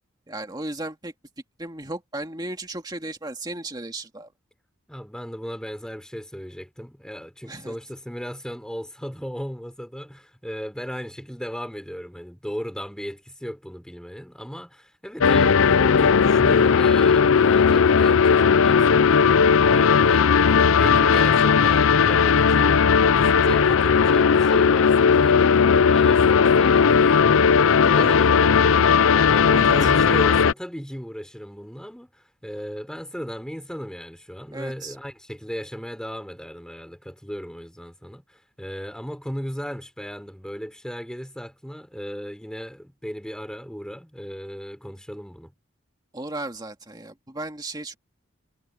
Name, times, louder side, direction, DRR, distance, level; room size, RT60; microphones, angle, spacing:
voice 1, 0.3-1.1 1.6-4.3 7.4-7.7 28.0-28.3 29.5-29.9 34.5-35.0 46.1-48.0, right 2 dB, 20° right, 2.3 m, -35 dB
voice 2, 4.9-45.5, equal, 5° left, 4.0 m, -36 dB
sound 1, 15.2-30.5, left 6 dB, 80° left, 0.5 m, -17 dB
head